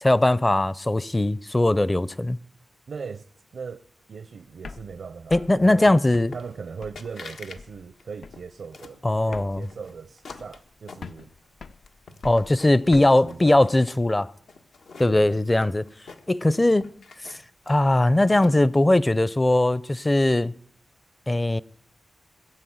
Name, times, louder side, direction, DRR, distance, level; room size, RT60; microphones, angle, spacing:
voice 1, 0.0-2.4 5.3-6.3 9.0-9.7 12.2-14.3 15.0-15.9 16.3-16.9 17.2-17.4 17.7-20.5 21.3-21.6, left 1 dB, 20° left, 0.6 m, -20 dB
voice 2, 2.9-3.3 3.5-5.9 6.3-11.3 12.9-13.8 15.1-15.4, right 5 dB, 70° right, 0.6 m, -39 dB
sound 1, 4.5-7.2 7.6-7.9 8.2-8.6 8.9-9.0 9.2-10.7 11.0-13.1, left 4 dB, 65° left, 0.6 m, -43 dB
sound 2, 6.3-6.7 7.0-7.6 7.9-9.0 9.6-11.5 11.9-12.9 13.2-14.0 14.5-16.5 16.8-18.8, left 4 dB, 85° left, 1.5 m, -45 dB
20.0 x 9.1 x 7.9 m
cardioid pair, 50°, 0 cm